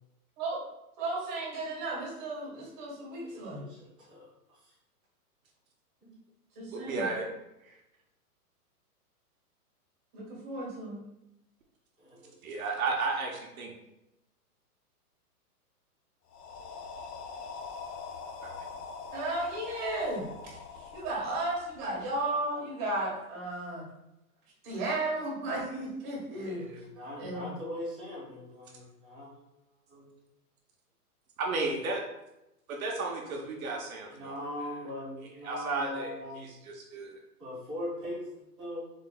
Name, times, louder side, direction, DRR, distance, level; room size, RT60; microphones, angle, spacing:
voice 1, 1.0-3.7 6.5-7.1 10.1-11.0 19.1-23.8 24.6-26.7 27.2-27.5, right 2 dB, 30° right, -4 dB, 1.3 m, -34 dB
voice 2, 3.2-4.7 6.0-6.1 12.0-12.6 26.6-29.3 29.9-30.1 34.1-36.5 37.4-38.8, left 1 dB, ahead, -22 dB, 0.4 m, -41 dB
voice 3, 6.7-7.3 7.6-7.8 12.4-13.7 18.4-18.5 26.5-26.8 31.4-32.0 32.7-34.3 35.4-37.2, right 3 dB, 60° right, 1 dB, 0.8 m, -34 dB
sound 1, 16.3-22.2, left 5 dB, 75° left, 0.7 m, -43 dB
4.0 x 3.6 x 2.2 m, 0.89 s
hypercardioid pair, 155°, 47 cm